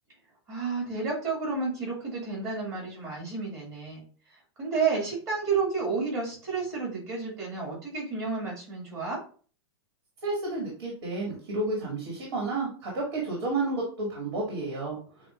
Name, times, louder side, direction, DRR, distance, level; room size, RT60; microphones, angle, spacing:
voice 1, 0.5-4.0 4.6-9.2, right 4 dB, 25° right, -5 dB, 2.2 m, -31 dB
voice 2, 10.2-15.0, right 2 dB, 65° right, -3 dB, 2.4 m, -31 dB
7.9 x 2.7 x 2.5 m, 0.42 s
supercardioid pair, 175°, 14 cm